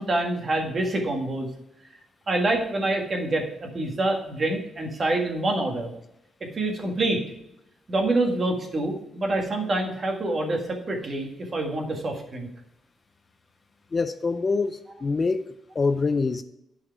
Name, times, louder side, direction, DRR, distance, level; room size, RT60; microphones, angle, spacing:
voice 1, 0.0-1.5 2.3-5.9 6.5-7.2 7.9-12.5, right 2 dB, 35° right, 2 dB, 1.8 m, -26 dB
voice 2, 13.9-15.4 15.7-16.4, left 4 dB, 30° left, 11 dB, 0.4 m, -25 dB
11.0 x 4.9 x 4.6 m, 0.83 s
cardioid pair, 130°, 0 cm